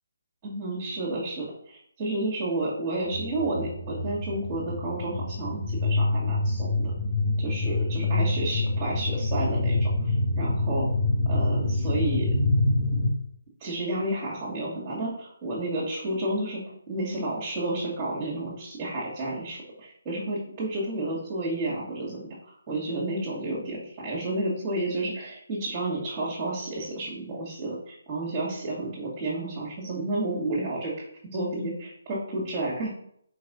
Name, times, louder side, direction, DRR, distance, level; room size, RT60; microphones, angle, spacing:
voice 1, 0.4-6.9 7.4-10.9 11.3-12.3 13.6-16.6 16.9-22.3 22.7-31.0 31.3-32.9, right 2 dB, 20° right, -7 dB, 2.4 m, -31 dB
sound 1, 3.1-13.1, left 2 dB, 20° left, 2.1 m, -26 dB
4.8 x 4.7 x 5.4 m, 0.68 s
figure-of-eight pair, 155°, 0 cm